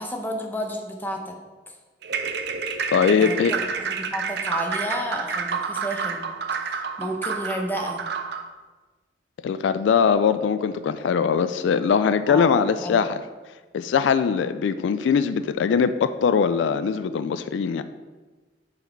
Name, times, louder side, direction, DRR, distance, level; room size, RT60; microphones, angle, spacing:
voice 1, 0.0-1.4 1.7-1.8 3.2-6.2 6.6-8.0 12.3-13.0, equal, 10° left, 2 dB, 0.7 m, -31 dB
sound 1, 2.0-8.5, right 5 dB, 60° right, 0.5 m, -29 dB
voice 2, 2.9-3.5 9.4-13.2 13.7-17.8, left 6 dB, 80° left, 12 dB, 0.3 m, -21 dB
6.8 x 4.1 x 4.5 m, 1.3 s
head